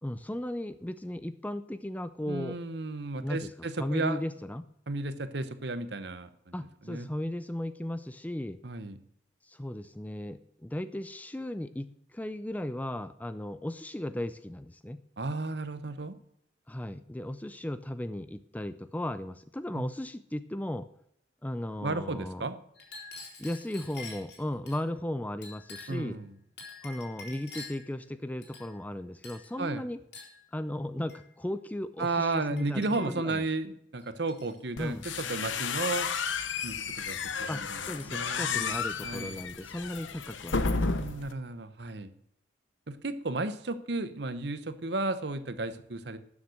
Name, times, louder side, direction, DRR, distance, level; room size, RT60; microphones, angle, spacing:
voice 1, 0.0-2.6 3.2-3.5 3.8-4.6 6.5-8.6 9.5-15.0 16.7-20.9 21.4-22.5 23.4-26.2 26.8-30.0 30.5-33.5 34.8-35.0 37.5-40.7 41.0-41.1, left 1 dB, 10° left, 13 dB, 0.4 m, -36 dB
voice 2, 2.3-4.2 4.9-6.5 6.8-7.1 8.6-9.0 15.2-16.2 19.7-19.9 21.8-22.6 25.9-26.3 29.6-29.8 32.0-36.1 36.6-39.4 40.6-42.1 42.9-46.2, right 3 dB, 60° right, 12 dB, 0.9 m, -34 dB
Chink clink, 22.7-24.8 25.4-26.1 26.6-27.9 28.4-28.9 29.2-29.5 30.1-30.4 31.1-31.3 32.0-32.2 32.6-33.3 34.0-34.6 34.9-35.3 36.3-37.0 37.7-37.9 38.2-39.1, left 3 dB, 60° left, 4.0 m, -48 dB
sound 1, 34.8-41.3, left 5 dB, 85° left, 0.9 m, -32 dB
13.0 x 7.3 x 6.4 m, 0.73 s
head